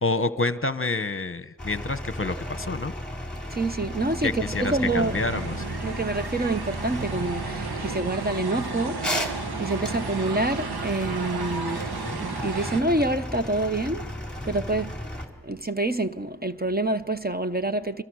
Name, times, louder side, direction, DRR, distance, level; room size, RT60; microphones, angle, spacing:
voice 1, 0.0-2.9 4.2-5.5, left 3 dB, 35° left, 1.1 m, -28 dB
sound 1, 1.6-15.3, left 1 dB, ahead, 4.2 m, -35 dB
voice 2, 3.5-5.2 5.8-9.1 9.5-11.9 12.2-14.1 14.4-15.0 15.4-18.0, right 2 dB, 25° right, 0.9 m, -27 dB
sound 2, 3.5-12.8, right 5 dB, 70° right, 1.2 m, -34 dB
29.5 x 24.0 x 6.4 m
cardioid pair, 45°, 39 cm